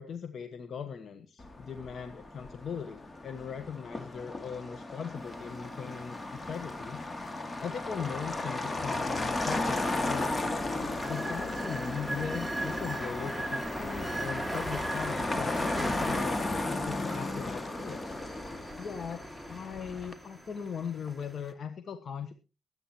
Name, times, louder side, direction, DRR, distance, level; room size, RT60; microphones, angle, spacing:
voice 1, 0.0-7.0 7.6-10.5 11.1-18.0 18.8-19.2 19.5-22.3, left 7 dB, 65° left, 9 dB, 1.2 m, -39 dB
Motor vehicle (road), 1.4-20.1, left 2 dB, 35° left, 2.2 m, -35 dB
sound 1, 5.2-21.5, right 2 dB, ahead, 2.5 m, -41 dB
22.5 x 9.0 x 3.1 m, 0.30 s
supercardioid pair, 55°, 0 cm